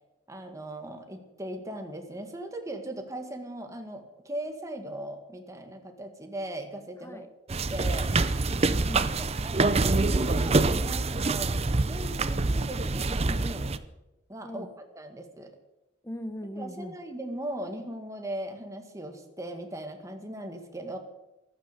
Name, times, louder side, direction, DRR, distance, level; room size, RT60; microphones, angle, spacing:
voice 1, 0.3-7.3 7.7-8.1 9.2-13.8 14.3-14.7 15.0-15.5 16.6-21.0, right 1 dB, 15° right, 4 dB, 1.9 m, -38 dB
sound 1, 7.5-13.8, right 3 dB, 35° right, 0.6 m, -26 dB
voice 2, 8.5-9.1 14.4-14.7 16.0-16.9, equal, 15° left, 10 dB, 1.0 m, -39 dB
14.5 x 12.0 x 6.8 m, 0.96 s
head